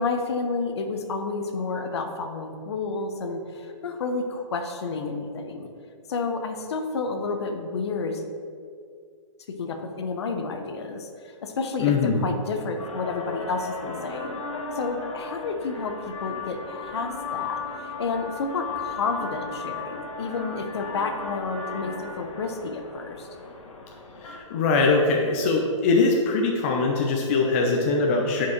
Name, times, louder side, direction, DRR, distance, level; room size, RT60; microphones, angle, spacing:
voice 1, 0.0-5.7 6.1-8.2 9.6-14.4 14.7-23.3, left 4 dB, 55° left, 5 dB, 0.8 m, -30 dB
voice 2, 11.8-12.3 24.2-28.5, left 3 dB, 25° left, 0 dB, 0.5 m, -22 dB
sound 1, 12.8-24.4, left 4 dB, 75° left, 1.4 m, -36 dB
6.0 x 4.7 x 5.8 m, 2.2 s
hypercardioid pair, 165°, 17 cm